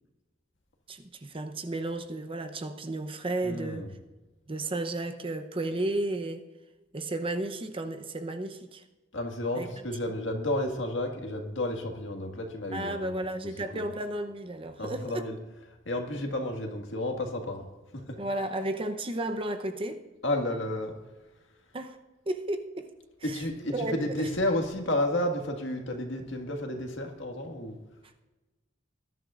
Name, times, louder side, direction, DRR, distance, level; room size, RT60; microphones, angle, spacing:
voice 1, 0.9-3.9 4.5-6.5 6.9-8.8 9.5-9.7 12.7-15.2 18.2-20.0 21.7-22.0 22.3-22.9 23.2-23.4 23.7-24.1, right 2 dB, 30° right, 0.7 m, -33 dB
voice 2, 3.4-3.9 9.1-13.2 13.7-13.8 14.8-15.4 15.8-17.6 17.9-18.2 20.2-20.9 23.2-27.8, left 1 dB, 65° left, 1.8 m, -31 dB
20.0 x 11.5 x 2.5 m
head